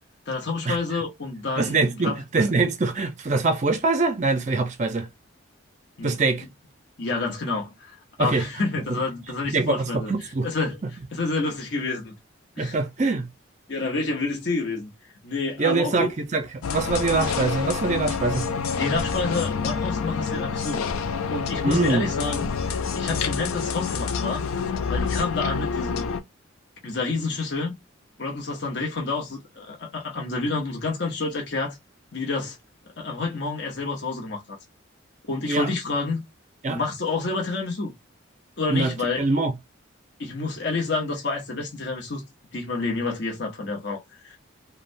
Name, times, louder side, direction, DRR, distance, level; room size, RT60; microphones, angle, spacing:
voice 1, 0.3-2.1 6.0-6.2 7.0-10.1 10.4-10.8 11.1-12.1 12.6-12.8 13.7-14.9 15.2-16.1 18.8-20.8 21.3-22.5 23.0-24.5 24.9-26.1 26.8-27.7 28.2-31.8 32.1-32.6 33.0-34.6 35.3-36.2 36.7-37.9 38.6-39.2 40.2-42.2 42.5-44.4, left 3 dB, 55° left, 0.8 m, -28 dB
voice 2, 1.6-5.1 6.0-6.4 8.2-8.5 8.9-9.0 9.5-10.5 12.6-13.3 15.6-16.4 16.7-18.5 21.6-22.1 35.5-35.7 36.6-36.8 38.7-39.5, right 3 dB, 35° right, 0.4 m, -24 dB
sound 1, 16.6-26.2, left 5 dB, 90° left, 0.4 m, -27 dB
3.1 x 2.2 x 2.5 m
head